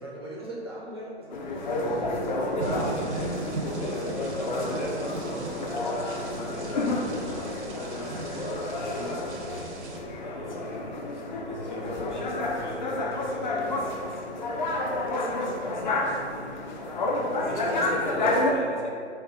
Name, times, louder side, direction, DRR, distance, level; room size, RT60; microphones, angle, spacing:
voice 1, 0.0-1.9 6.8-7.0 17.5-17.7, right 1 dB, 25° right, -6 dB, 0.3 m, -40 dB
sound 1, 1.3-18.5, left 2 dB, 45° left, 0.4 m, -30 dB
voice 2, 2.5-3.3 3.6-4.2 4.5-6.1 6.5-7.1 7.5-8.4 8.8-16.2 17.2-19.1, left 1 dB, 80° left, -2 dB, 0.9 m, -39 dB
sound 2, 2.6-10.0, right 3 dB, 70° right, 0.6 m, -38 dB
4.3 x 2.3 x 2.8 m, 2.3 s
figure-of-eight pair, 125°, 35 cm